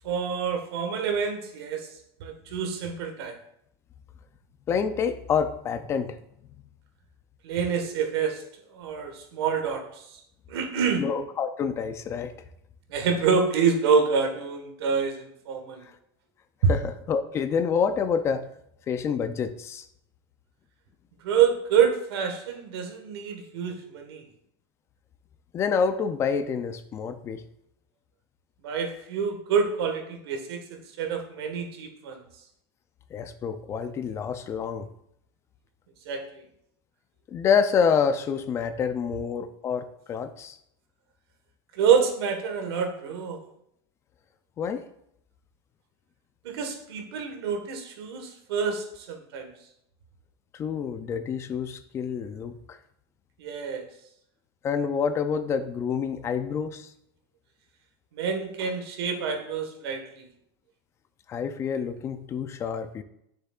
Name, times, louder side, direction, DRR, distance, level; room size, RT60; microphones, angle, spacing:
voice 1, 0.0-1.9 2.2-3.4 7.4-8.4 8.7-9.8 10.5-11.0 12.9-15.8 16.6-16.7 21.2-24.2 28.6-32.2 36.0-36.4 41.7-43.4 46.4-49.5 53.4-53.8 58.2-60.3, right 6 dB, 85° right, 5 dB, 1.5 m, -27 dB
voice 2, 4.7-6.2 11.0-12.3 16.7-18.5 18.9-19.9 25.5-27.4 33.1-34.9 37.3-40.6 44.6-44.8 50.5-52.8 54.6-56.9 61.3-63.0, left 6 dB, 20° left, 10 dB, 0.4 m, -27 dB
10.0 x 6.6 x 2.4 m, 0.74 s
supercardioid pair, 165°, 13 cm